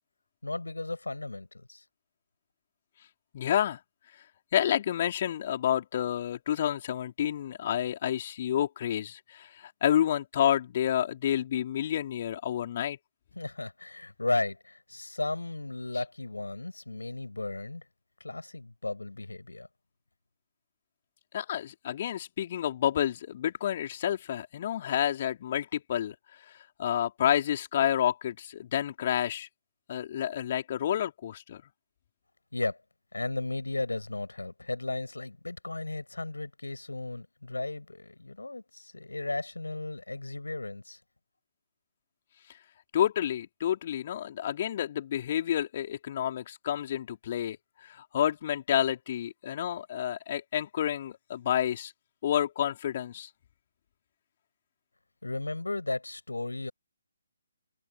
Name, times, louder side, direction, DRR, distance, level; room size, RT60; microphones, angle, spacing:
voice 1, 0.4-1.8 13.4-17.8 18.2-19.7 32.5-32.8 33.1-41.0 55.2-56.7, left 2 dB, 75° left, 7.4 m, -35 dB
voice 2, 3.3-3.8 4.5-13.0 21.3-26.2 26.5-29.5 29.9-31.6 42.9-47.6 47.8-51.9 52.2-53.3, left 10 dB, 35° left, 4.1 m, -29 dB
figure-of-eight pair, 140°, 0 cm